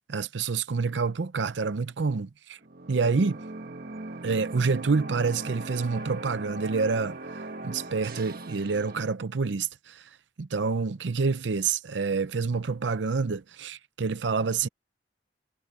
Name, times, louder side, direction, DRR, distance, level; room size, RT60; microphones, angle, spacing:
voice 1, 0.1-2.6 2.9-3.4 4.2-10.1 10.4-14.7, right 4 dB, 80° right, 0.6 m, -28 dB
sound 1, 2.6-9.0, right 2 dB, 55° right, 1.4 m, -39 dB
head